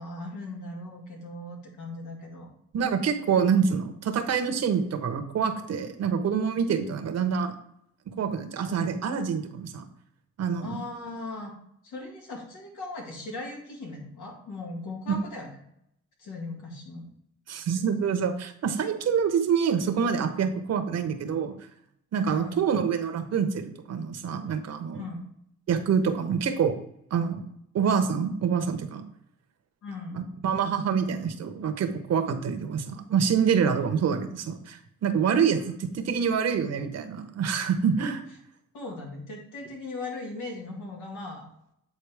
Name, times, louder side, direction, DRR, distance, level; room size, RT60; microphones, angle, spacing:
voice 1, 0.0-2.5 8.6-8.7 10.6-11.5 11.8-15.5 16.2-17.1 22.2-22.6 24.9-25.2 29.8-30.2 35.8-36.1 38.7-41.5, left 2 dB, 85° left, 0 dB, 2.0 m, -38 dB
voice 2, 2.7-7.6 8.1-9.8 10.4-10.8 15.1-15.2 17.5-21.5 22.1-25.0 25.7-26.8 27.1-27.4 27.7-29.0 30.1-38.2, right 6 dB, 60° right, 8 dB, 0.9 m, -26 dB
8.5 x 4.1 x 3.4 m, 0.74 s
cardioid pair, 90°, 30 cm